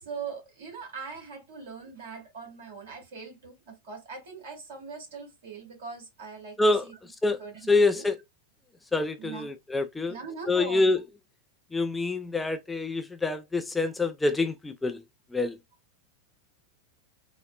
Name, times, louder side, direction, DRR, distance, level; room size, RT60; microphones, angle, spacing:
voice 1, 0.0-6.9 7.4-7.7 7.9-8.0 9.2-9.5 10.1-10.9, right 5 dB, 60° right, 1.5 m, -41 dB
voice 2, 7.7-8.2 8.9-10.2 10.5-11.0 11.7-15.0 15.3-15.6, left 3 dB, 10° left, 0.3 m, -26 dB
3.9 x 2.0 x 2.3 m
figure-of-eight pair, 90°, 0 cm